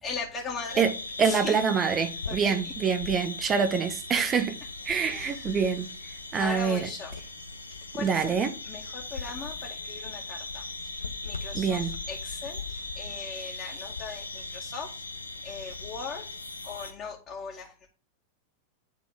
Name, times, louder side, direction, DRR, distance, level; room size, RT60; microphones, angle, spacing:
voice 1, 0.0-0.9 1.2-1.6 2.3-2.6 5.1-5.7 6.4-7.1 7.9-8.4 8.6-15.0 15.4-16.3 16.6-17.9, left 4 dB, 30° left, 2.0 m, -39 dB
sound 1, 0.7-16.9, left 3 dB, 80° left, 0.8 m, -38 dB
voice 2, 1.2-4.6 4.8-5.9 6.3-6.9 8.0-8.5 11.5-11.9, right 6 dB, 25° right, 1.0 m, -26 dB
10.5 x 4.1 x 3.7 m
figure-of-eight pair, 90°, 0 cm